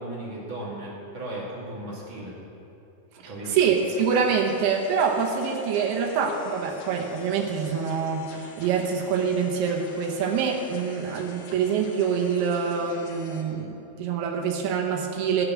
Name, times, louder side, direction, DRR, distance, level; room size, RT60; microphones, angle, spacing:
voice 1, 0.0-2.4 3.2-3.6, right 1 dB, 35° right, -6 dB, 2.8 m, -36 dB
sound 1, 3.4-13.4, left 3 dB, 60° left, 2.4 m, -46 dB
voice 2, 3.5-15.5, right 6 dB, 90° right, 0 dB, 3.0 m, -25 dB
16.5 x 6.6 x 6.3 m, 2.8 s
omnidirectional pair, 4.4 m